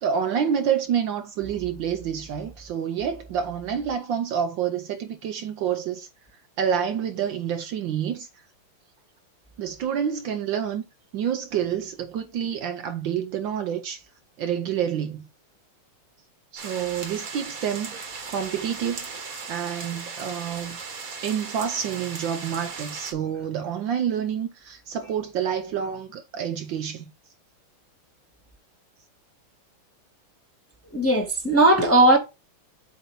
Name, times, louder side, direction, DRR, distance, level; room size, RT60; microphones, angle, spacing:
voice 1, 0.0-6.1 6.6-8.3 9.6-10.8 11.1-14.0 14.4-15.3 16.5-19.1 19.5-27.1, right 8 dB, 70° right, 1.3 m, -28 dB
sound 1, 16.6-23.1, right 5 dB, 45° right, 1.6 m, -37 dB
voice 2, 30.9-32.2, right 2 dB, 10° left, 1.0 m, -17 dB
8.0 x 2.9 x 5.4 m
omnidirectional pair, 2.4 m